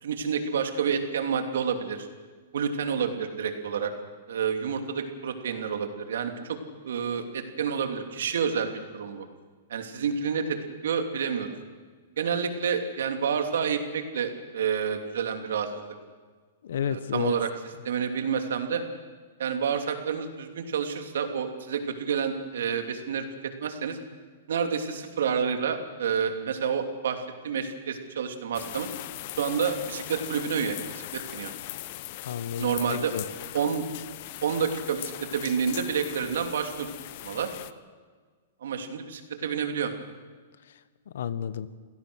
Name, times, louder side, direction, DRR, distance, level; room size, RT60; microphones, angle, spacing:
voice 1, 0.0-2.1 2.5-3.9 4.3-6.6 6.8-9.2 9.7-10.6 10.8-11.5 12.2-15.9 16.8-17.5 17.8-18.8 19.4-23.2 23.6-24.0 24.5-28.9 29.4-30.8 31.1-31.5 32.6-33.1 33.5-33.8 34.4-36.9 37.2-37.5 38.6-39.9, right 7 dB, 75° right, 5 dB, 3.0 m, -29 dB
voice 2, 16.6-17.4 32.2-33.2 40.7-40.8 41.1-41.7, left 8 dB, 70° left, 14 dB, 1.3 m, -31 dB
sound 1, 28.5-37.7, left 16 dB, 45° left, 0.8 m, -40 dB
28.0 x 17.0 x 6.4 m, 1.5 s
hypercardioid pair, 160°, 0 cm